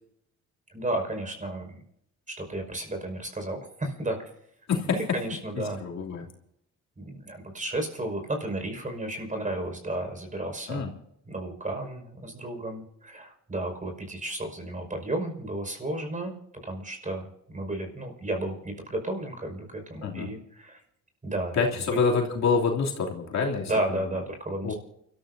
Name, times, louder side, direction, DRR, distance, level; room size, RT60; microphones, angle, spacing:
voice 1, 0.7-1.8 2.3-4.2 4.8-5.8 7.0-10.9 11.3-16.3 16.6-20.8 21.2-21.6 21.9-22.0 23.7-24.7, right 1 dB, 25° right, 4 dB, 5.6 m, -33 dB
voice 2, 4.7-5.2 5.6-6.3 10.7-10.9 20.0-20.3 21.5-24.0 24.6-24.7, left 5 dB, 60° left, -1 dB, 3.1 m, -27 dB
29.5 x 13.5 x 2.7 m, 0.75 s
cardioid pair, 90°, 30 cm